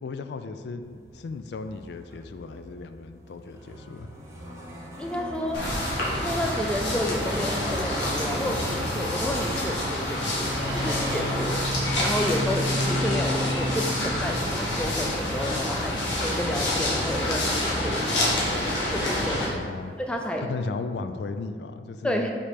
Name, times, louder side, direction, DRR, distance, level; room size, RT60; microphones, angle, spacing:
voice 1, 0.0-4.1 19.5-20.0 20.4-22.3, left 3 dB, 70° left, 9 dB, 0.3 m, -35 dB
sound 1, 0.8-20.1, right 1 dB, 15° right, 0.8 m, -39 dB
voice 2, 5.0-5.6 6.2-11.6 12.0-18.5 18.9-19.4 20.1-20.5 22.0-22.3, left 1 dB, 5° left, 2 dB, 0.4 m, -31 dB
sound 2, 5.5-19.5, left 1 dB, 85° left, 1.5 m, -27 dB
5.1 x 4.2 x 5.0 m, 2.1 s
head